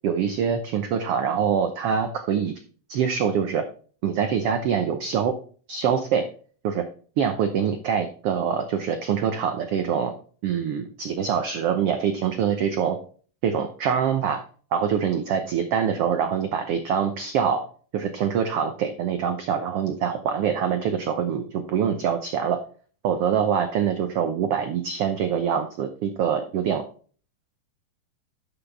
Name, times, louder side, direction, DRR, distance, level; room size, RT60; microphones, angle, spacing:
voice 1, 0.0-2.5 2.9-3.6 4.0-5.3 5.7-6.2 6.6-6.8 7.2-10.1 10.4-13.0 13.4-14.4 14.7-17.7 17.9-22.6 23.0-26.8, right 7 dB, 85° right, 8 dB, 1.3 m, -24 dB
11.5 x 6.0 x 3.4 m, 0.42 s
omnidirectional pair, 3.8 m